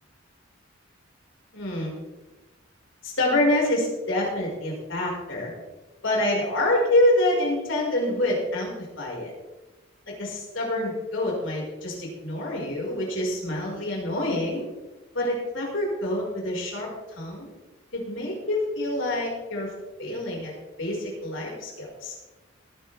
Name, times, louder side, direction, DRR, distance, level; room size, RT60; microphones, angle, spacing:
voice 1, 1.5-1.9 3.0-5.5 6.0-9.3 10.2-14.6 15.1-16.9 17.2-17.5 17.9-19.7 20.0-20.5 20.8-22.1, left 1 dB, 70° left, -3 dB, 5.3 m, -26 dB
18.5 x 10.5 x 3.5 m, 1.1 s
head